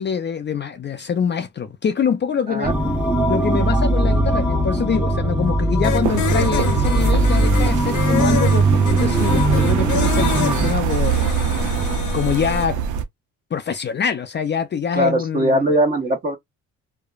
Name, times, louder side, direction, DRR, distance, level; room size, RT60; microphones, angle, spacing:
voice 1, 0.0-2.8 3.3-11.3 12.1-12.8 13.5-15.7, left 7 dB, 35° left, 0.5 m, -24 dB
sound 1, 2.6-10.7, right 1 dB, 5° right, 0.8 m, -19 dB
sound 2, 5.8-12.7, left 10 dB, 85° left, 0.7 m, -28 dB
sound 3, 6.0-13.0, right 8 dB, 75° right, 0.6 m, -23 dB
voice 2, 14.9-16.4, right 1 dB, 30° right, 1.2 m, -20 dB
3.0 x 2.1 x 2.4 m
cardioid pair, 90°, 30 cm